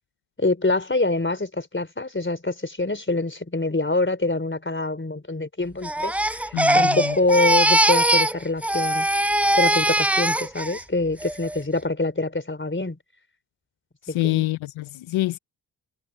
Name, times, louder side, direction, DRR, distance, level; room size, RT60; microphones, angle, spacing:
voice 1, 0.4-9.1 9.5-13.0 14.1-14.5, left 2 dB, 25° left, 4.4 m, -25 dB
Crying sobbing, 5.8-8.4 8.6-10.8 11.2-11.6, right 1 dB, 5° right, 0.3 m, -21 dB
voice 2, 6.5-7.2 14.0-15.4, left 17 dB, 85° left, 0.7 m, -26 dB
supercardioid pair, 40°, 47 cm